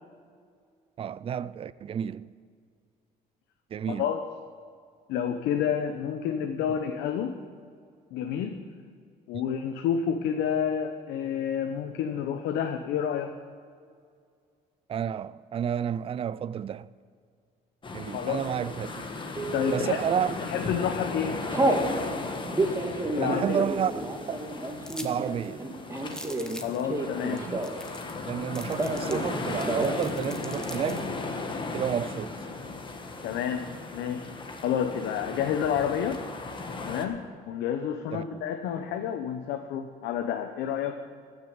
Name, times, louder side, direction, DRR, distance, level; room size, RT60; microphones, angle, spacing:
voice 1, 1.0-2.3 3.7-4.1 14.9-16.9 17.9-19.0 19.7-20.3 20.6-20.7 23.2-23.9 24.3-24.4 25.0-25.7 27.4-27.7 28.3-31.1 31.7-32.4 38.1-38.2, right 8 dB, 35° right, 0.4 m, -31 dB
voice 2, 3.9-4.2 5.1-7.4 8.1-8.6 9.3-13.3 18.1-18.5 19.5-20.0 20.5-21.4 23.1-23.7 26.6-27.5 33.2-34.3 34.6-36.2 36.9-41.0, left 8 dB, 85° left, 0.9 m, -29 dB
sound 1, 17.8-37.1, left 3 dB, 30° left, 1.4 m, -36 dB
Telephone, 19.4-19.9 20.4-20.7 21.0-21.9 22.4-27.9 28.2-29.3 29.6-30.0 30.3-30.4 30.7-31.3, right 2 dB, 20° right, 1.7 m, -30 dB
sound 2, 24.8-25.1 25.4-25.5 26.1-26.8 27.4-27.5 27.6-28.2 28.5-31.0, left 1 dB, 5° left, 1.3 m, -42 dB
15.0 x 6.6 x 8.7 m
cardioid pair, 110°, 17 cm